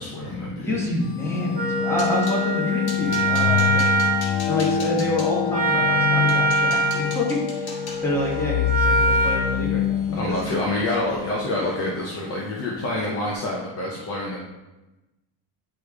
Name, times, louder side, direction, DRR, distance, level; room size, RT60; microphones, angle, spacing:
voice 1, 0.0-0.8 10.2-14.4, left 1 dB, 30° left, -4 dB, 0.8 m, -27 dB
voice 2, 0.6-3.9 4.5-10.4, left 1 dB, 5° left, -5 dB, 1.3 m, -28 dB
sound 1, 1.0-13.3, left 9 dB, 70° left, 0.8 m, -27 dB
sound 2, 1.5-2.4 2.8-5.3 5.9-6.0 6.3-10.5 10.8-11.2 11.5-11.7 12.1-12.3, left 3 dB, 50° left, 1.7 m, -40 dB
Wind instrument woodwind instrument, 1.5-9.5, right 2 dB, 20° right, 0.8 m, -24 dB
9.7 x 3.3 x 3.6 m, 1.0 s
cardioid pair, 165°, 47 cm